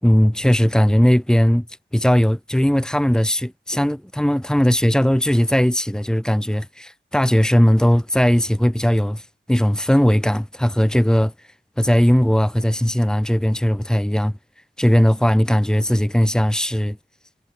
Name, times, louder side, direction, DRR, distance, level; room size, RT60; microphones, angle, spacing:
voice 1, 0.0-1.7 1.9-11.5 11.8-14.3 14.8-17.0, equal, 5° left, 4.5 m, -18 dB
wide cardioid pair, 130°, 21 cm